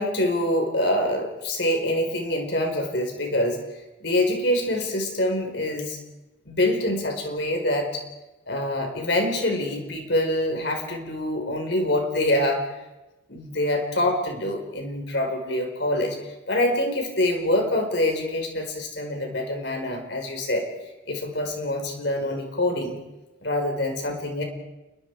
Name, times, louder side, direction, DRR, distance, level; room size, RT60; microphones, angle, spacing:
voice 1, 0.0-3.6 4.0-6.0 6.4-8.0 8.5-12.6 13.3-16.2 16.5-20.7 21.1-23.0 23.4-24.4, left 1 dB, 60° left, 3 dB, 4.7 m, -25 dB
29.5 x 21.0 x 4.8 m, 1.0 s
head